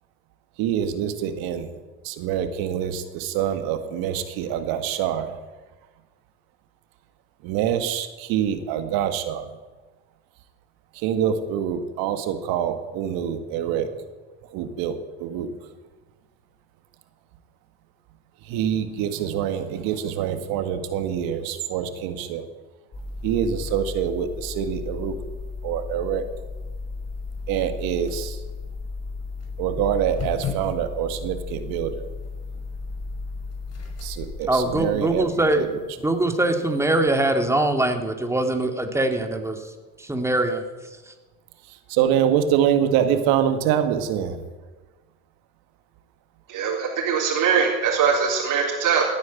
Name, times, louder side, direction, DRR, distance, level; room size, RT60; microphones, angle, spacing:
voice 1, 0.6-1.7 2.0-5.3 7.4-9.5 11.0-13.9 14.5-15.5 18.5-22.4 23.2-25.1 25.6-26.2 27.5-28.4 29.6-32.1 34.0-35.8 41.9-44.4, right 9 dB, 75° right, 9 dB, 1.9 m, -25 dB
sound 1, 22.9-35.5, left 3 dB, 40° left, 5.0 m, -34 dB
voice 2, 34.5-35.7 36.0-39.6 40.0-40.6, right 2 dB, 5° right, 5 dB, 2.3 m, -22 dB
voice 3, 46.5-49.0, right 6 dB, 55° right, -4 dB, 3.8 m, -22 dB
16.5 x 9.6 x 8.4 m, 1.3 s
supercardioid pair, 90°, 36 cm